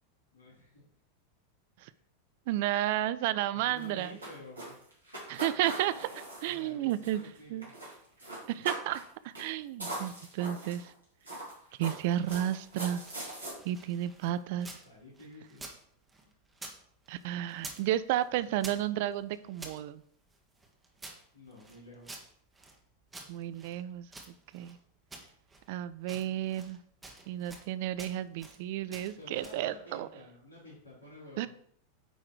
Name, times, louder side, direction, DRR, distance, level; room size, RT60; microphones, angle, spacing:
voice 1, 0.3-0.8 3.5-4.8 6.4-7.7 14.8-15.7 16.2-16.3 21.3-22.1 29.2-31.5, left 2 dB, 80° left, -6 dB, 3.3 m, -51 dB
voice 2, 2.5-4.2 5.3-7.2 7.5-7.7 8.5-10.9 11.8-13.0 13.7-14.7 17.1-20.0 23.3-24.1 24.5-24.8 25.7-26.8 27.3-30.1 31.4-31.5, right 13 dB, 55° right, 15 dB, 0.4 m, -32 dB
sound 1, 3.7-7.4 7.6-7.9 8.2-9.1 9.3-9.5 9.8-10.9 11.2-13.5, right 1 dB, 85° right, 2.8 m, -41 dB
sound 2, 12.1-14.9 15.2-16.8 17.0-17.9 18.2-19.8 20.3-22.8 23.1-24.8 25.1-25.7 26.0-26.8 27.0-27.7 28.0-28.6 28.9-29.7, right 2 dB, 15° right, 1.5 m, -49 dB
9.1 x 3.8 x 4.6 m, 0.65 s
figure-of-eight pair, 90°, 0 cm